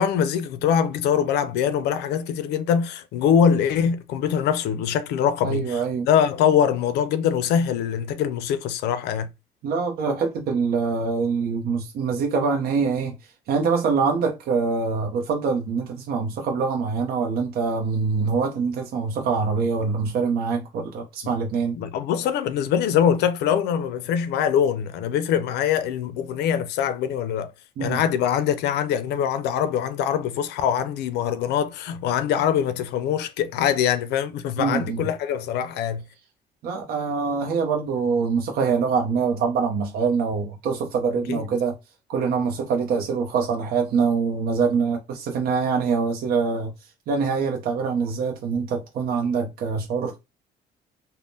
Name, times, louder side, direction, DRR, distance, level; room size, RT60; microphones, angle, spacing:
voice 1, 0.0-9.3 21.8-27.5 27.8-36.0 41.3-41.4, left 8 dB, 80° left, 0.4 m, -23 dB
voice 2, 5.4-6.1 9.6-13.2 13.5-21.8 27.8-28.0 34.6-35.1 36.6-41.8 42.1-46.7 47.1-50.2, right 5 dB, 65° right, 0.6 m, -24 dB
3.4 x 2.0 x 2.6 m
cardioid pair, 110°, 17 cm